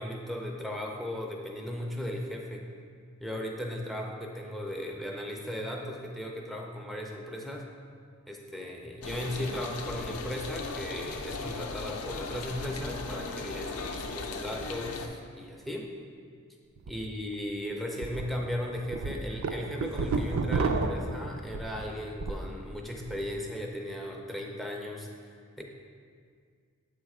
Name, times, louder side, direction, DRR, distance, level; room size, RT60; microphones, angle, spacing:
voice 1, 0.0-2.7 3.2-7.6 8.3-15.9 16.9-25.6, equal, ahead, 0 dB, 0.4 m, -37 dB
sound 1, 9.0-15.1, left 3 dB, 70° left, 0.4 m, -37 dB
sound 2, 16.8-16.9 17.3-17.4 18.0-18.2 18.7-22.5 22.8-23.3, right 4 dB, 65° right, 0.4 m, -31 dB
7.1 x 3.2 x 4.8 m, 2.1 s
head